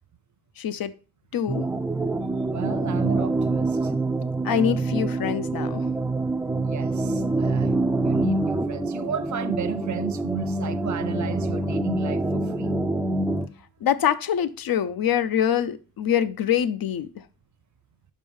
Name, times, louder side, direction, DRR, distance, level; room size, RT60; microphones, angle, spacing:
voice 1, 0.6-0.9 1.3-1.6 4.4-5.9 13.8-17.2, left 9 dB, 65° left, 0.6 m, -24 dB
sound 1, 1.5-13.5, right 2 dB, 5° right, 0.4 m, -26 dB
voice 2, 2.4-3.9 6.6-12.8, right 8 dB, 50° right, 0.7 m, -33 dB
5.3 x 5.2 x 5.4 m
wide cardioid pair, 125°, 39 cm